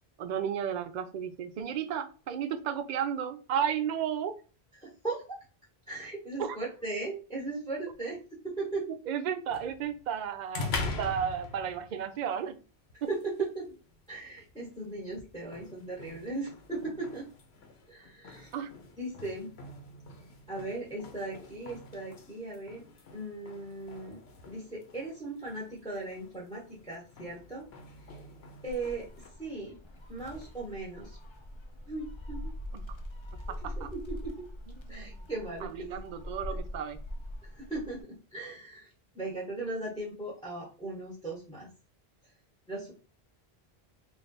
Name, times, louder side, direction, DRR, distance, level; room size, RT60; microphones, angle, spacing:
voice 1, 0.2-4.3 6.4-6.6 9.1-12.6 18.5-18.7 32.7-32.9 33.5-33.9 34.9-35.3 35.6-37.0, right 8 dB, 55° right, 9 dB, 0.5 m, -33 dB
voice 2, 4.8-5.4 5.9-8.2 8.6-8.8 13.1-13.6 14.1-17.2 17.9-18.5 19.0-19.5 20.5-22.8 23.1-24.2 24.4-27.6 28.6-29.1 29.4-29.8 30.1-31.2 31.9-32.5 33.6-34.3 34.9-36.0 37.6-41.7 42.7-42.9, right 2 dB, 5° left, -3 dB, 1.0 m, -38 dB
sound 1, 9.5-29.3, left 3 dB, 80° left, 1.0 m, -44 dB
Gull seagull, 28.7-38.0, left 1 dB, 40° left, 0.4 m, -42 dB
3.3 x 2.5 x 4.0 m, 0.36 s
omnidirectional pair, 1.1 m